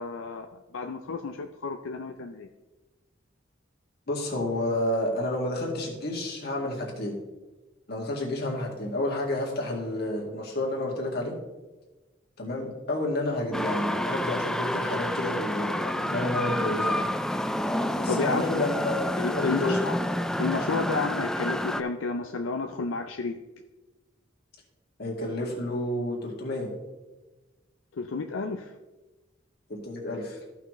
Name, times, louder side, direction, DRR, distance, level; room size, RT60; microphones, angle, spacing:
voice 1, 0.0-2.5 18.1-18.6 19.2-19.9 20.4-23.4 27.9-28.7, left 4 dB, 85° left, 5 dB, 0.5 m, -31 dB
voice 2, 4.1-7.2 7.9-11.4 12.4-17.1 18.0-19.0 19.3-19.9 25.0-26.7 29.7-30.4, left 1 dB, 55° left, -2 dB, 2.1 m, -30 dB
sound 1, 13.5-21.8, left 1 dB, 5° left, 0.3 m, -29 dB
14.0 x 5.8 x 3.2 m, 1.1 s
head